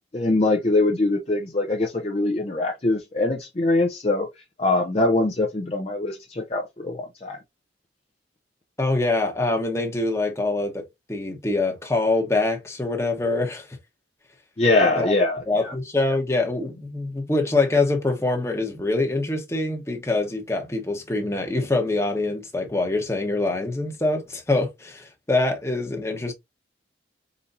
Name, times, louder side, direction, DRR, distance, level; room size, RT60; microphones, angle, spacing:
voice 1, 0.1-4.3 4.6-7.4 14.6-15.7, left 2 dB, 30° left, 0.6 m, -23 dB
voice 2, 8.8-13.7 15.0-15.1 15.5-26.3, left 2 dB, 15° left, 1.1 m, -24 dB
4.4 x 4.0 x 2.6 m
head